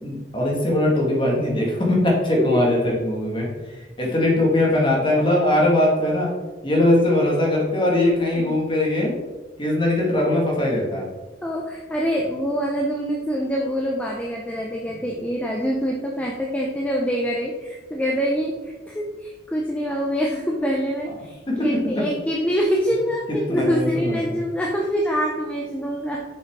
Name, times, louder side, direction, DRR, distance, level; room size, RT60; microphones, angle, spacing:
voice 1, 0.0-3.5 4.0-6.3 6.6-9.2 9.6-11.1 21.5-22.1 23.5-24.4, left 1 dB, 25° left, -2 dB, 1.7 m, -21 dB
voice 2, 2.5-2.9 4.0-4.1 8.3-8.6 11.4-26.2, equal, 5° left, -1 dB, 0.6 m, -25 dB
7.1 x 6.2 x 3.6 m, 1.2 s
head